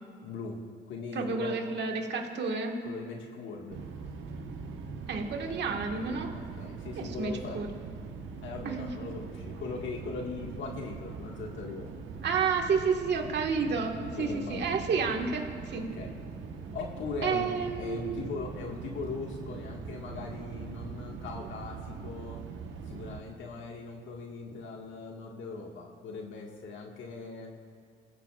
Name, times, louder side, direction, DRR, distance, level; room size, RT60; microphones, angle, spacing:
voice 1, 0.2-0.6 0.9-1.6 2.8-3.8 6.3-7.6 8.4-12.0 14.2-14.9 15.7-16.2 16.7-17.5 17.8-22.4 22.9-27.5, left 4 dB, 75° left, 0 dB, 1.8 m, -40 dB
voice 2, 1.1-2.8 5.1-6.3 7.0-7.7 8.6-8.9 12.2-15.8 17.2-18.2, right 5 dB, 60° right, 2 dB, 1.7 m, -30 dB
sound 1, 3.7-23.2, right 5 dB, 75° right, 1.2 m, -42 dB
26.5 x 15.0 x 2.5 m, 2.2 s
cardioid pair, 90°, 20 cm